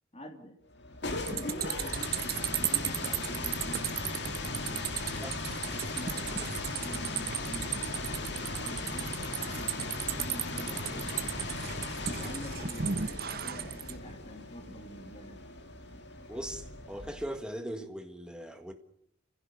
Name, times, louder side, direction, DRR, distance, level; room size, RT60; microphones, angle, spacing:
voice 1, 0.1-0.6 1.2-11.5 12.0-15.4, equal, 30° left, 3.1 m, -47 dB
sound 1, 0.7-17.4, left 2 dB, 60° left, 2.4 m, -38 dB
sound 2, 1.3-14.0, right 9 dB, 50° right, 1.1 m, -36 dB
voice 2, 16.3-18.7, equal, 5° right, 1.8 m, -39 dB
29.0 x 16.0 x 7.0 m
head